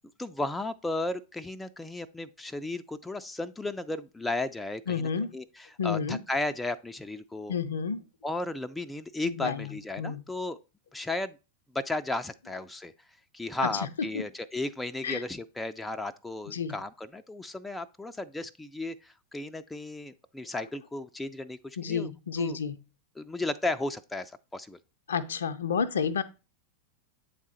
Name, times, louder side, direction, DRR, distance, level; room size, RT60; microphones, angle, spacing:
voice 1, 0.2-7.5 8.2-10.6 10.9-11.4 11.7-12.9 13.3-22.1 22.4-22.6 23.2-24.8, left 2 dB, 5° left, 0.4 m, -34 dB
voice 2, 4.9-5.3 5.8-6.2 7.5-8.1 9.2-10.2 13.6-13.7 14.1-14.2 15.0-15.2 16.5-16.7 21.8-22.8 25.1-26.2, left 6 dB, 65° left, 0.5 m, -30 dB
8.6 x 3.6 x 4.0 m
figure-of-eight pair, 90°, 0 cm